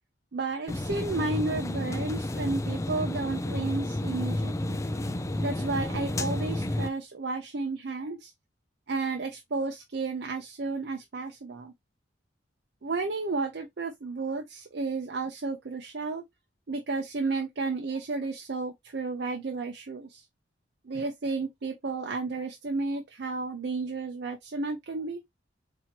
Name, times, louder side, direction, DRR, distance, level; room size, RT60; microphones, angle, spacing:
voice 1, 0.3-4.7 5.4-8.3 8.9-11.7 12.8-16.2 16.7-20.2 20.9-25.2, right 3 dB, 60° right, 0.6 m, -32 dB
sound 1, 0.7-6.9, left 1 dB, 15° left, 0.3 m, -31 dB
4.3 x 2.7 x 2.9 m
head